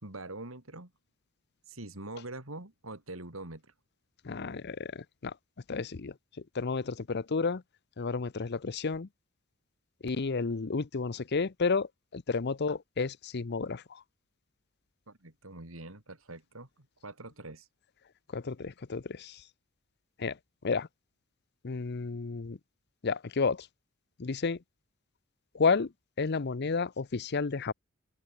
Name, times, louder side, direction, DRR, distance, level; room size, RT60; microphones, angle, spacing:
voice 1, 0.0-0.9 1.7-3.7 15.1-17.7, right 2 dB, 75° right, 3.7 m, -44 dB
voice 2, 4.2-5.3 5.7-6.1 6.5-7.6 8.0-9.1 10.0-14.0 18.3-19.4 20.2-20.4 20.6-20.9 21.6-22.6 23.0-23.7 24.2-24.6 25.5-25.9 26.2-27.7, left 4 dB, 55° left, 0.7 m, -31 dB
open air
head